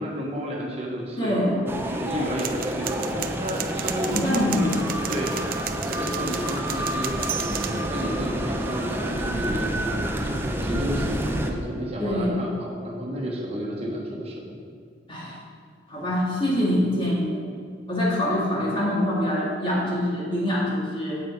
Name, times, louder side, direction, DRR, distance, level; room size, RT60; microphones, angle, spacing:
voice 1, 0.0-4.8 5.1-14.4, equal, 35° right, -2 dB, 1.3 m, -31 dB
voice 2, 1.2-1.6 4.1-4.7 12.0-12.5 15.1-15.4 15.9-17.4 17.9-21.2, left 1 dB, 30° left, -5 dB, 2.2 m, -24 dB
sound 1, 1.7-11.5, right 1 dB, 15° right, 0.7 m, -29 dB
sound 2, 2.4-7.8, right 10 dB, 55° right, 0.5 m, -34 dB
8.6 x 7.9 x 4.6 m, 2.2 s
head